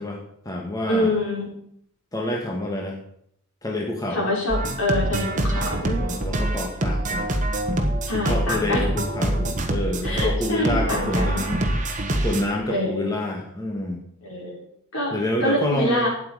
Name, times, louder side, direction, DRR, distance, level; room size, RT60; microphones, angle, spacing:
voice 1, 0.0-1.1 2.1-3.0 3.6-4.3 6.0-7.4 8.3-11.6 12.2-14.0 15.1-16.1, left 1 dB, 15° left, 0 dB, 1.6 m, -28 dB
voice 2, 0.9-1.5 4.1-6.0 8.1-8.8 10.0-11.4 12.7-13.1 14.2-14.6 14.9-15.2 15.4-16.1, left 1 dB, 70° left, -3 dB, 5.3 m, -25 dB
sound 1, 4.5-12.4, right 1 dB, 35° right, 1.5 m, -25 dB
12.5 x 9.0 x 5.0 m, 0.69 s
head